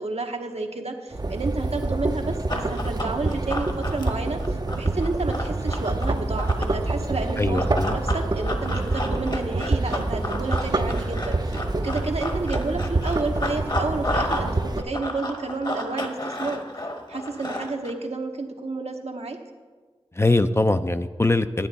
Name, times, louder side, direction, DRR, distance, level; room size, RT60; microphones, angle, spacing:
voice 1, 0.0-16.6 17.1-19.4, right 3 dB, 75° right, 4 dB, 0.9 m, -31 dB
sound 1, 1.1-14.8, right 2 dB, 35° right, 0.5 m, -27 dB
Run, 2.5-6.8 7.5-14.5 14.8-17.9, left 1 dB, 40° left, 1.1 m, -32 dB
voice 2, 7.4-8.0 20.2-21.7, left 2 dB, 25° left, 11 dB, 0.4 m, -22 dB
10.5 x 8.9 x 4.1 m, 1.4 s
wide cardioid pair, 45°, 11 cm